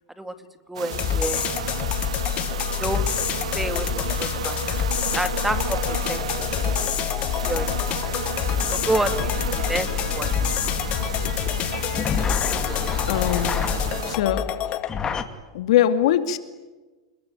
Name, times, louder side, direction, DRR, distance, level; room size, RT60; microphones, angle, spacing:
voice 1, 0.7-1.5 2.8-3.1 3.5-4.9 5.1-6.5 7.0-7.1 7.4-7.7 8.7-9.3 9.5-10.3, right 1 dB, 5° right, 10 dB, 2.2 m, -29 dB
sound 1, 0.8-14.2, right 9 dB, 85° right, 2.7 m, -33 dB
sound 2, 0.9-14.9, left 11 dB, 40° left, 2.0 m, -27 dB
sound 3, 8.5-15.2, left 5 dB, 20° left, 2.5 m, -31 dB
voice 2, 13.1-13.6 14.1-14.5 15.5-16.4, left 11 dB, 70° left, 10 dB, 2.6 m, -21 dB
29.0 x 22.0 x 9.2 m, 1.2 s
hypercardioid pair, 115°, 3 cm